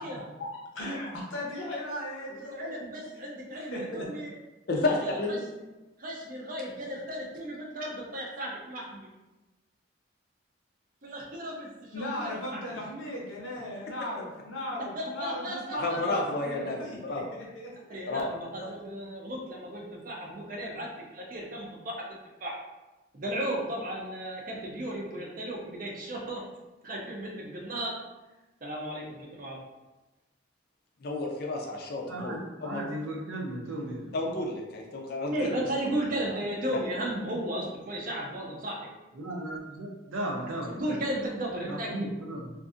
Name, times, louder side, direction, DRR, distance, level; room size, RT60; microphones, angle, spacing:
voice 1, 0.4-2.7 3.5-4.1 11.9-17.9, left 1 dB, 80° left, -3 dB, 0.7 m, -37 dB
voice 2, 2.3-4.3 4.8-4.9 6.0-9.1 11.0-12.6 14.9-15.8 17.9-21.9 22.4-22.5 23.1-26.4 26.8-27.9 28.6-29.6 34.2-34.3 35.3-38.8 40.8-42.1, right 1 dB, 45° right, -2 dB, 0.5 m, -35 dB
voice 3, 4.7-5.4 15.8-16.8 17.0-17.2 18.0-18.3 18.6-18.7 31.0-32.9 34.1-35.5 35.9-36.3 36.8-36.9, left 2 dB, 50° left, 1 dB, 0.4 m, -31 dB
voice 4, 32.1-34.1 39.2-41.0 41.7-42.5, right 1 dB, 85° right, -2 dB, 0.6 m, -36 dB
2.5 x 2.5 x 2.4 m, 1.1 s
head